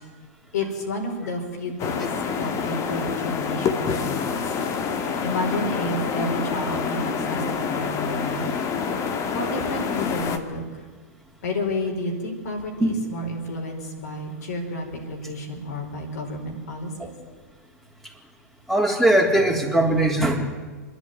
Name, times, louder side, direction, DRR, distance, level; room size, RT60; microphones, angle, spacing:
voice 1, 0.5-2.1 2.4-4.5 5.2-8.5 9.3-10.8 11.4-17.1, left 1 dB, 70° left, 2 dB, 5.0 m, -31 dB
sound 1, 1.8-10.4, left 6 dB, 35° left, 1.9 m, -27 dB
voice 2, 18.7-20.4, right 1 dB, ahead, 2 dB, 3.5 m, -20 dB
26.0 x 11.0 x 9.7 m, 1.4 s
hypercardioid pair, 105°, 9 cm